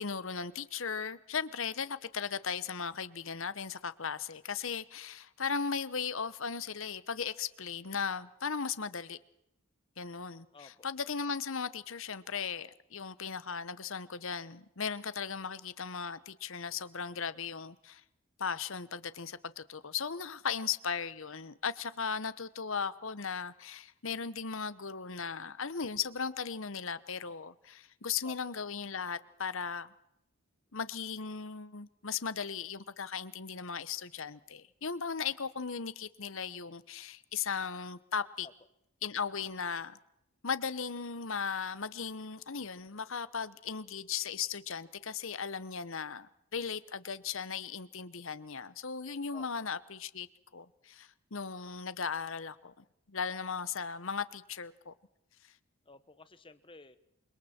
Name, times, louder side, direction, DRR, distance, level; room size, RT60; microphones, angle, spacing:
voice 1, 0.0-9.2 10.0-18.0 18.4-29.9 30.7-38.5 39.0-40.0 40.4-50.3 50.5-52.7 53.1-54.9, left 6 dB, 60° left, 1.0 m, -37 dB
voice 2, 10.5-10.8 28.2-28.4 38.4-38.5 49.3-49.5 55.8-57.0, left 3 dB, 25° left, 1.2 m, -53 dB
28.5 x 25.5 x 4.4 m
head